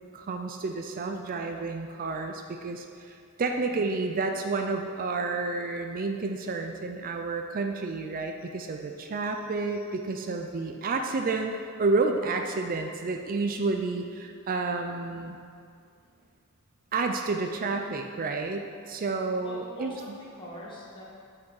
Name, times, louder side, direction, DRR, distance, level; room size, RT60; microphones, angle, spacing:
voice 1, 0.1-15.4 16.9-19.9, right 3 dB, 40° right, 4 dB, 0.4 m, -30 dB
voice 2, 19.4-21.0, left 1 dB, 25° left, -6 dB, 1.9 m, -44 dB
8.6 x 5.8 x 4.8 m, 2.4 s
head